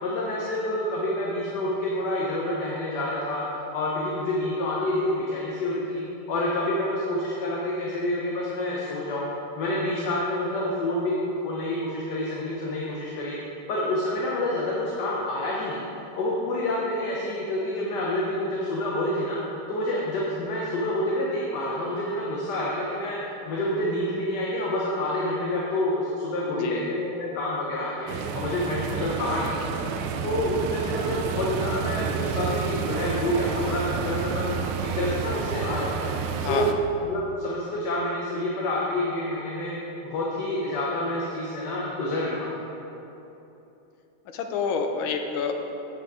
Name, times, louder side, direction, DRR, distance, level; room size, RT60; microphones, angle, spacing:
voice 1, 0.0-3.4 3.7-6.0 6.3-9.3 9.6-11.2 11.4-13.4 13.7-15.8 16.2-19.4 19.7-23.2 23.4-29.8 30.2-34.6 34.8-36.1 36.5-36.7 37.0-39.8 40.0-42.6, left 1 dB, 60° left, -4 dB, 1.4 m, -28 dB
voice 2, 26.5-26.9 36.4-36.7 44.3-45.5, left 5 dB, 75° left, 5 dB, 1.5 m, -28 dB
sound 1, 28.1-36.7, right 7 dB, 85° right, 1.5 m, -30 dB
8.1 x 6.6 x 4.8 m, 3.0 s
omnidirectional pair, 2.3 m